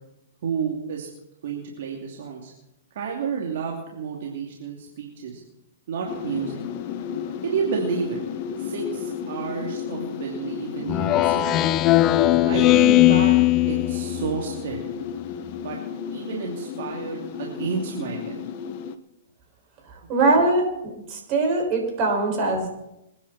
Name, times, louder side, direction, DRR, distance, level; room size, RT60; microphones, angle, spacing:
voice 1, 0.4-1.1 1.4-2.5 2.9-5.4 5.9-6.6 7.4-8.2 8.6-11.5 12.5-13.3 13.7-14.8 15.6-15.8 16.1-18.4, right 6 dB, 65° right, -1 dB, 2.9 m, -30 dB
sound 1, 6.1-19.0, left 7 dB, 45° left, 1.1 m, -33 dB
Speech synthesizer, 10.9-14.4, left 15 dB, 30° left, 0.6 m, -18 dB
voice 2, 19.9-22.7, right 2 dB, 35° right, 0 dB, 5.9 m, -22 dB
26.5 x 10.0 x 4.4 m, 0.88 s
hypercardioid pair, 135°, 0 cm